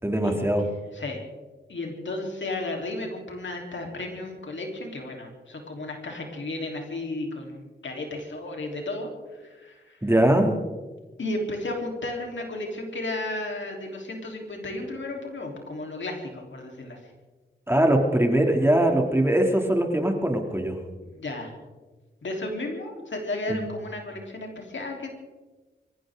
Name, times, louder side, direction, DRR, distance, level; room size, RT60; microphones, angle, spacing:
voice 1, 0.0-0.7 10.0-10.6 17.7-20.8 23.5-23.7, right 1 dB, 10° right, 3 dB, 2.8 m, -22 dB
voice 2, 1.7-9.1 9.4-10.0 11.2-17.0 21.0-21.5 22.2-25.1, left 2 dB, 75° left, 1 dB, 3.7 m, -33 dB
24.5 x 15.5 x 3.8 m, 1.2 s
cardioid pair, 60°, 19 cm